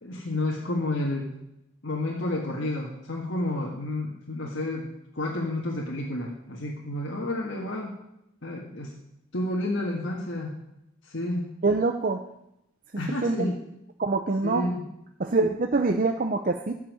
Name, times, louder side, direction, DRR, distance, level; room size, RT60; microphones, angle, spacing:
voice 1, 0.0-1.3 1.8-4.9 5.1-7.9 8.4-8.9 9.3-10.6 11.0-11.5 13.0-13.6 14.4-14.8, left 1 dB, 55° left, -2 dB, 1.7 m, -30 dB
voice 2, 11.6-12.2 13.2-13.4 14.0-14.6 15.2-16.7, right 3 dB, 40° right, 6 dB, 0.6 m, -24 dB
14.5 x 5.6 x 9.4 m, 0.83 s
head